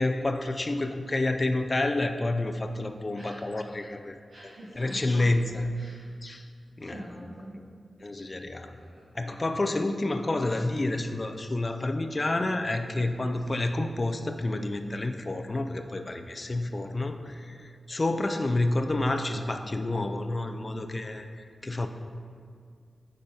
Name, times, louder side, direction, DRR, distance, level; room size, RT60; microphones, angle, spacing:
voice 1, 0.0-4.1 4.8-5.7 6.2-6.5 6.8-7.0 8.0-8.8 9.1-21.9, left 2 dB, 25° left, 7 dB, 0.3 m, -29 dB
voice 2, 4.3-5.3 5.7-6.0 6.9-7.6 8.7-9.0, right 1 dB, 85° right, -10 dB, 1.6 m, -45 dB
8.5 x 5.1 x 2.7 m, 2.2 s
wide cardioid pair, 165°, 0 cm